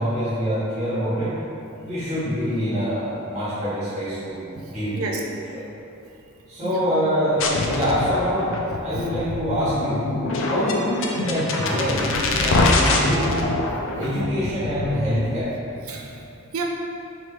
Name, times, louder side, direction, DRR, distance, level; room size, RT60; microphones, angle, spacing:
voice 1, 0.0-1.3 1.8-4.5 4.7-5.0 6.5-10.1 10.4-13.5 13.9-15.5, equal, 30° right, -15 dB, 1.4 m, -25 dB
voice 2, 4.5-5.2 6.1-6.8 9.0-9.1 15.8-16.6, right 4 dB, 75° right, 1 dB, 0.5 m, -34 dB
sound 1, 7.4-15.4, left 2 dB, 60° left, 0.4 m, -24 dB
4.4 x 3.4 x 3.2 m, 2.7 s
head